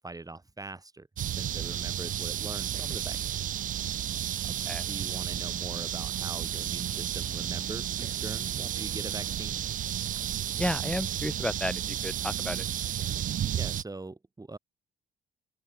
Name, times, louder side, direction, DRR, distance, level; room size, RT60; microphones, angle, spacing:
voice 1, 0.0-3.4 4.8-9.6 13.5-14.6, right 2 dB, 20° right, 2.3 m, -42 dB
sound 1, 1.2-13.8, right 11 dB, 45° right, 0.5 m, -32 dB
voice 2, 4.4-4.8 10.6-12.6, left 1 dB, 5° left, 0.6 m, -33 dB
open air
hypercardioid pair, 55°, 18 cm